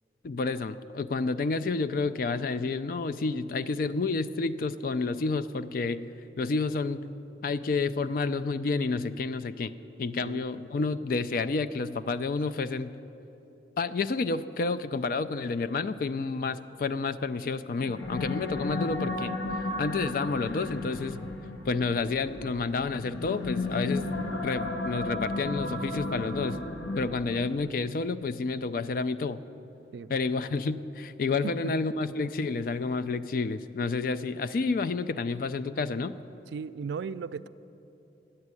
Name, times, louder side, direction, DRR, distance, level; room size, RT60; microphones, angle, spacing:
voice 1, 0.2-6.1 6.4-7.0 7.4-9.7 10.0-13.0 13.8-19.3 19.8-21.2 21.7-24.1 24.4-26.6 27.0-29.4 30.1-36.1, left 4 dB, 50° left, 13 dB, 0.4 m, -30 dB
voice 2, 10.2-10.6 29.9-30.1 31.4-31.7 36.5-37.5, right 5 dB, 75° right, 14 dB, 0.3 m, -36 dB
sound 1, 17.8-27.6, left 2 dB, 75° left, 0.9 m, -34 dB
10.5 x 8.0 x 9.6 m, 3.0 s
head